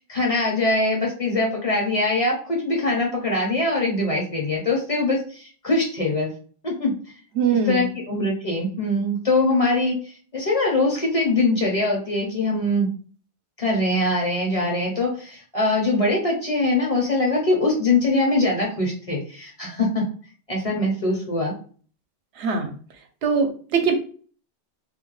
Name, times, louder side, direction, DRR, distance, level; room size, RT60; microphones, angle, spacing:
voice 1, 0.0-6.3 6.6-6.9 7.6-10.0 10.3-12.9 13.6-20.1 20.5-21.5, left 2 dB, 40° left, -1 dB, 0.7 m, -22 dB
voice 2, 7.4-7.9 22.4-22.7 23.2-23.9, right 5 dB, 75° right, 4 dB, 0.8 m, -21 dB
2.5 x 2.1 x 3.0 m, 0.42 s
omnidirectional pair, 1.1 m